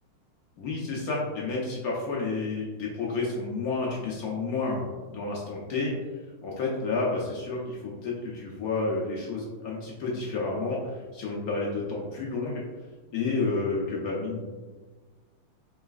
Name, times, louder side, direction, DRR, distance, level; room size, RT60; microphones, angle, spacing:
voice 1, 0.6-5.9 6.4-12.6 13.1-14.4, left 3 dB, 75° left, -3 dB, 0.8 m, -30 dB
4.7 x 3.3 x 2.3 m, 1.3 s
omnidirectional pair, 2.3 m